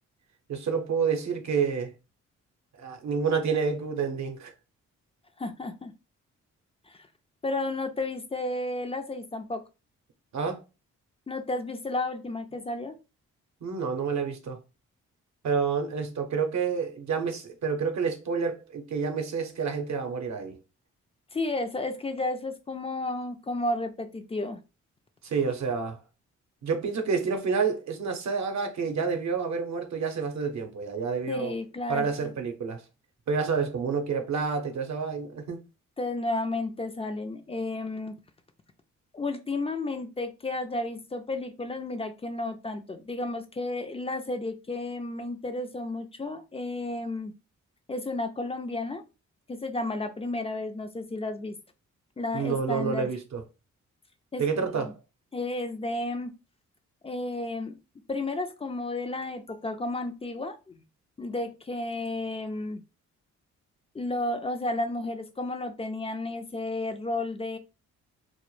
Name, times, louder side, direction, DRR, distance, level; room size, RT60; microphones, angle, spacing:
voice 1, 0.5-1.9 2.8-4.5 10.3-10.6 13.6-14.6 15.4-20.6 25.2-26.0 26.6-31.6 31.9-32.8 33.3-35.6 52.3-53.4 54.4-54.9, right 5 dB, 60° right, 0.7 m, -29 dB
voice 2, 5.4-5.9 6.9-7.1 7.4-9.6 11.3-13.0 21.3-24.6 31.3-32.3 36.0-38.2 39.1-47.3 47.9-49.0 49.5-51.6 52.2-53.1 54.3-54.9 55.3-56.3 57.0-57.8 58.1-60.8 61.2-62.8 63.9-67.6, left 2 dB, 20° left, 0.3 m, -32 dB
2.1 x 2.0 x 3.0 m
cardioid pair, 65°, 31 cm